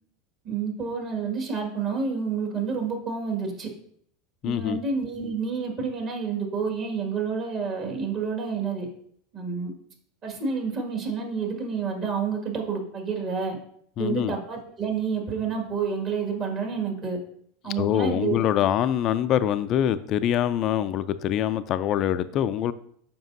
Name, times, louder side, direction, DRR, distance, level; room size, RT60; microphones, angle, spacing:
voice 1, 0.4-3.7 4.4-8.9 9.3-9.7 10.2-13.6 14.0-17.2 17.6-18.4, right 5 dB, 40° right, 1 dB, 1.9 m, -29 dB
voice 2, 4.4-4.8 14.0-14.4 17.6-22.7, left 10 dB, 45° left, 12 dB, 0.3 m, -24 dB
6.9 x 5.3 x 2.7 m, 0.64 s
hypercardioid pair, 85°, 0 cm